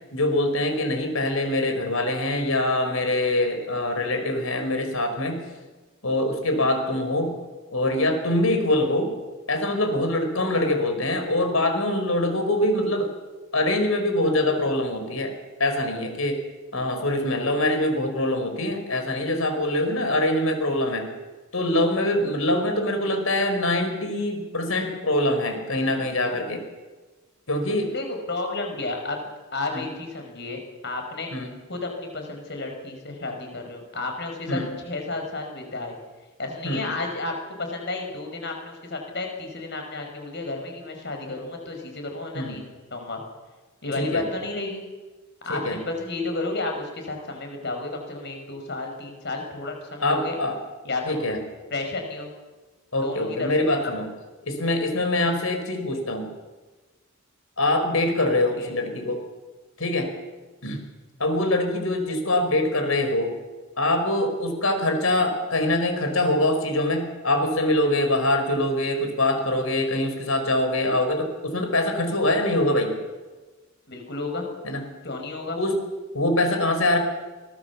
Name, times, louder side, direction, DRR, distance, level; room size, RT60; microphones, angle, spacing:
voice 1, 0.1-5.4 6.0-7.3 7.7-9.1 9.5-13.1 13.5-15.3 15.6-16.4 16.7-21.1 21.5-26.6 27.5-27.9 29.7-29.8 31.3-31.5 34.5-34.7 36.6-36.9 42.3-42.6 44.0-44.2 45.5-45.8 50.0-50.5 51.1-51.4 52.9-54.1 54.4-56.3 57.6-59.2 59.8-60.1 60.6-60.8 61.2-63.3 63.8-72.9 74.6-74.8 75.6-75.8 76.1-77.0, left 1 dB, 75° left, 6 dB, 4.9 m, -24 dB
voice 2, 27.9-29.3 29.5-31.3 31.7-36.0 36.4-43.2 43.8-44.8 45.4-50.4 50.8-51.2 51.7-52.3 53.0-53.5 53.8-53.9 58.4-58.7 73.9-74.5 75.0-75.6, left 2 dB, 55° left, 3 dB, 5.6 m, -32 dB
24.5 x 19.5 x 7.2 m, 1.3 s
head